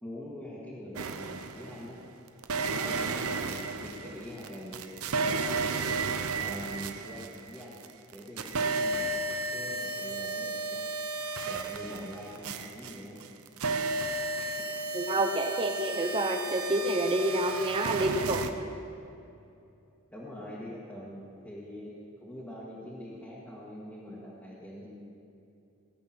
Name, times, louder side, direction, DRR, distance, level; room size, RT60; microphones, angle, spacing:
voice 1, 0.0-2.0 2.6-5.6 6.4-7.8 8.1-9.2 9.5-10.8 11.4-13.2 14.4-14.6 17.9-18.3 19.2-19.3 20.1-24.9, left 1 dB, 10° left, -8 dB, 1.7 m, -44 dB
sound 1, 1.0-1.9 2.4-7.9 8.1-18.5, right 3 dB, 80° right, 0.8 m, -33 dB
voice 2, 14.9-18.4, right 1 dB, 25° right, 6 dB, 0.6 m, -28 dB
17.5 x 8.6 x 6.1 m, 2.7 s
head